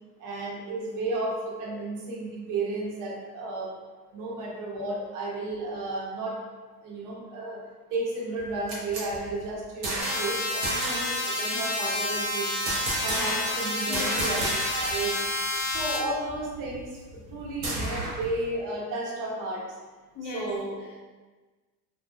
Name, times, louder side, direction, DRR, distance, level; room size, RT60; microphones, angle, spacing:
voice 1, 0.2-3.7 4.1-6.4 6.8-7.6 7.9-12.6 13.0-15.2 15.7-19.7 20.3-20.8, right 2 dB, 40° right, -3 dB, 0.9 m, -33 dB
sound 1, 8.4-10.3 10.6-11.1 12.6-13.6 13.9-15.0 15.3-15.4 15.7-18.3, right 1 dB, 85° right, 1.0 m, -32 dB
sound 2, 10.0-16.0, left 2 dB, 45° left, 0.8 m, -29 dB
voice 2, 13.9-14.4 20.1-21.0, left 2 dB, 25° left, -4 dB, 0.4 m, -39 dB
3.2 x 2.3 x 2.2 m, 1.3 s
hypercardioid pair, 85°, 50 cm